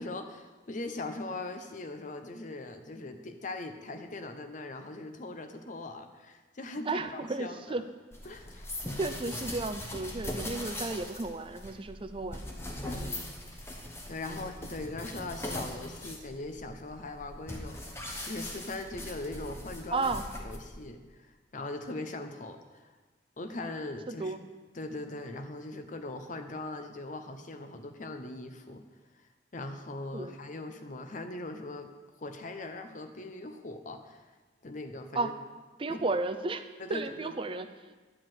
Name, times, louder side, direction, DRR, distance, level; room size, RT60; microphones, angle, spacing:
voice 1, 0.0-7.9 8.2-8.7 12.8-13.2 14.1-20.1 20.4-22.9 23.4-24.3 24.7-28.8 29.5-31.9 32.2-34.2 34.6-35.3 35.9-36.0 36.8-37.3, left 2 dB, 45° left, 7 dB, 0.7 m, -40 dB
voice 2, 6.9-7.8 9.0-12.4 13.0-13.5 19.9-20.2 24.1-24.4 30.1-30.3 35.1-35.3 35.8-36.6 36.9-37.9, right 3 dB, 30° right, 10 dB, 0.5 m, -33 dB
sound 1, 8.1-20.9, left 1 dB, 15° left, 1.0 m, -40 dB
10.5 x 4.8 x 7.6 m, 1.3 s
head